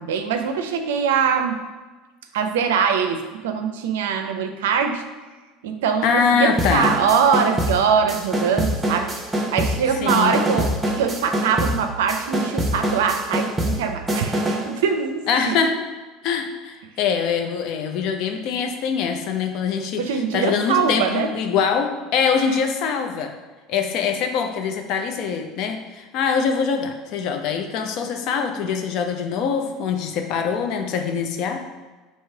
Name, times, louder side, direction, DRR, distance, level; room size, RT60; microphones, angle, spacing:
voice 1, 0.0-1.6 2.3-5.0 5.6-9.1 9.5-15.6 20.0-21.3 22.4-22.6, right 6 dB, 75° right, 6 dB, 0.4 m, -22 dB
voice 2, 6.0-6.9 10.0-10.3 15.3-15.8 16.2-20.1 20.3-23.3 23.7-31.6, left 6 dB, 60° left, 5 dB, 0.5 m, -23 dB
sound 1, 6.6-14.7, equal, 15° right, 0.8 m, -25 dB
3.1 x 2.9 x 4.5 m, 1.3 s
hypercardioid pair, 75°, 0 cm